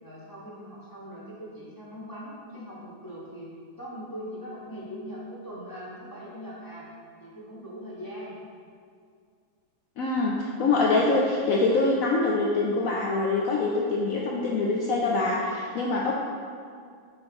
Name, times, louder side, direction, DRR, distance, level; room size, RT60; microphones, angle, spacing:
voice 1, 0.0-3.5 3.8-6.9 7.2-8.4 10.9-11.1, equal, 15° left, -7 dB, 0.7 m, -41 dB
voice 2, 10.0-16.1, left 3 dB, 85° left, -3 dB, 0.7 m, -24 dB
6.6 x 4.2 x 3.7 m, 2.2 s
omnidirectional pair, 2.1 m